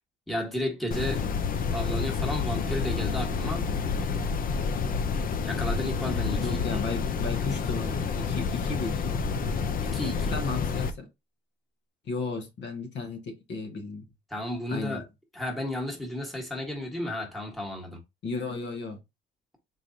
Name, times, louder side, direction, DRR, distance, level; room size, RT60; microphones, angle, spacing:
voice 1, 0.3-1.2 1.7-3.7 5.4-6.8 9.8-10.4 14.3-15.0 15.3-18.0, left 1 dB, ahead, 1.3 m, -33 dB
sound 1, 0.9-10.9, left 5 dB, 45° left, 0.5 m, -29 dB
voice 2, 6.4-9.1 10.3-11.1 12.1-14.0 14.7-15.0 18.2-19.0, left 3 dB, 60° left, 1.0 m, -34 dB
4.0 x 3.2 x 2.7 m
cardioid pair, 105°, 21 cm